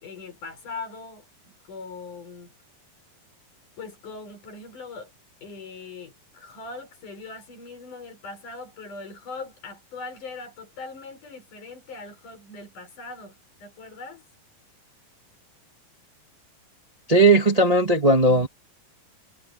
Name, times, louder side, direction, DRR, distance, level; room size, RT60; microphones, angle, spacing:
voice 1, 0.0-2.5 3.8-5.1 5.4-14.2, left 4 dB, 60° left, 6.6 m, -40 dB
voice 2, 17.1-18.5, right 2 dB, 35° right, 0.5 m, -17 dB
omnidirectional pair, 4.2 m